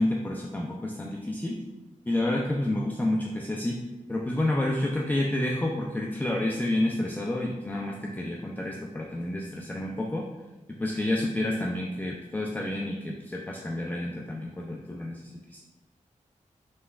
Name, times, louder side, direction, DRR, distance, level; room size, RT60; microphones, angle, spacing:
voice 1, 0.0-1.6 2.1-3.8 4.1-10.2 10.7-15.2 15.5-15.6, left 1 dB, 15° left, -1 dB, 0.4 m, -29 dB
5.3 x 3.4 x 2.3 m, 1.1 s
wide cardioid pair, 90°, 14 cm